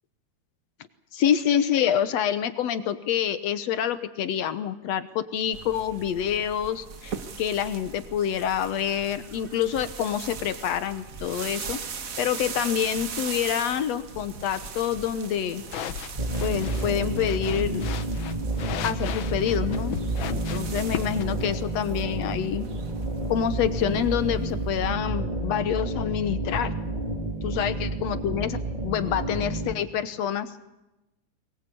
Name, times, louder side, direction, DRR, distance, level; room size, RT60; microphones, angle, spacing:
voice 1, 1.1-11.8 12.2-15.6 16.4-17.9 18.8-20.0 20.3-22.7 23.3-26.7 27.4-28.6 28.8-30.5, left 9 dB, 65° left, 12 dB, 2.0 m, -27 dB
sound 1, 5.5-24.9, right 6 dB, 65° right, 0.8 m, -40 dB
sound 2, 15.6-21.2, left 9 dB, 90° left, 1.1 m, -37 dB
sound 3, 16.2-29.7, right 2 dB, 20° right, 1.6 m, -30 dB
22.5 x 21.0 x 8.5 m, 0.96 s
omnidirectional pair, 3.6 m